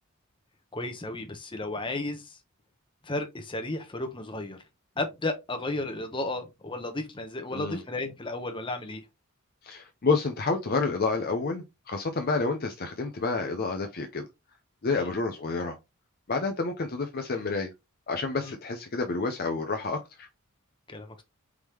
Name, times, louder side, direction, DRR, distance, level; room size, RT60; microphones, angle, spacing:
voice 1, 0.7-2.4 3.0-4.6 5.0-9.0 14.9-15.1 18.4-18.5 20.9-21.2, left 2 dB, 20° left, 0.9 m, -33 dB
voice 2, 7.5-7.8 9.6-14.3 14.8-15.8 16.3-17.7 18.1-20.3, left 3 dB, 45° left, 0.6 m, -29 dB
4.8 x 3.6 x 3.0 m
head